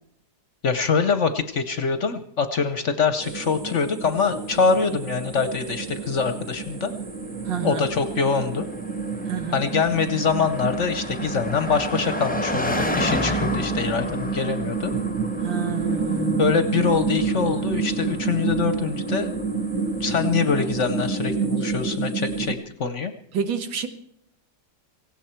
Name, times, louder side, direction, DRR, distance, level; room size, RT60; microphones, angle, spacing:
voice 1, 0.6-6.9 7.6-8.7 9.5-14.9 16.4-19.3 20.0-23.1, left 5 dB, 55° left, 11 dB, 0.9 m, -24 dB
sound 1, 3.2-22.5, right 4 dB, 45° right, 2.1 m, -29 dB
Car passing by, 4.6-21.1, left 1 dB, 5° left, 0.7 m, -33 dB
voice 2, 7.4-7.9 9.2-9.7 15.4-16.6 23.3-23.9, right 6 dB, 90° right, 8 dB, 2.0 m, -29 dB
17.5 x 16.0 x 4.5 m, 0.72 s
omnidirectional pair, 1.9 m